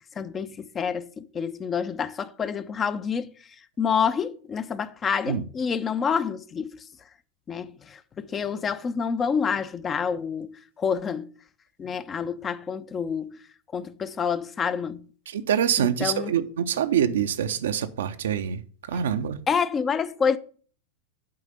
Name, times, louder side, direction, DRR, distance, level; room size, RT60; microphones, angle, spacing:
voice 1, 0.2-3.3 3.8-6.8 7.5-11.3 11.8-13.4 13.7-15.0 15.8-16.3 19.5-20.4, left 6 dB, 20° left, 0.6 m, -28 dB
voice 2, 15.3-18.6 18.9-19.4, right 9 dB, 60° right, 0.6 m, -25 dB
7.7 x 4.9 x 6.8 m
figure-of-eight pair, 90°, 0 cm